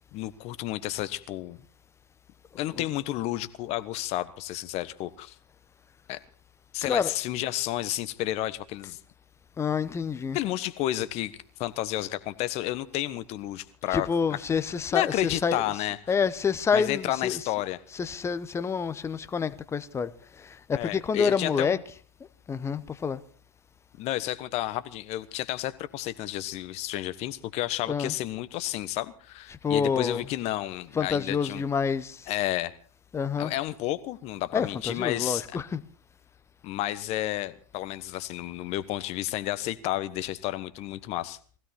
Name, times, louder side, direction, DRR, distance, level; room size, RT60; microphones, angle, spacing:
voice 1, 0.1-1.6 2.5-5.3 6.1-6.2 6.7-9.0 10.3-11.3 11.6-14.1 14.9-16.0 16.7-17.8 20.7-21.8 24.0-31.6 32.3-32.7 33.4-35.4 36.6-41.4, left 15 dB, 40° left, 1.2 m, -31 dB
voice 2, 6.8-7.1 9.6-10.4 13.9-15.7 16.1-17.5 17.9-20.1 20.4-21.8 22.5-23.2 27.9-28.1 29.5-30.3 30.9-32.3 33.1-33.5 34.5-35.8, left 6 dB, 15° left, 1.0 m, -28 dB
19.0 x 16.0 x 4.3 m
hypercardioid pair, 110°, 17 cm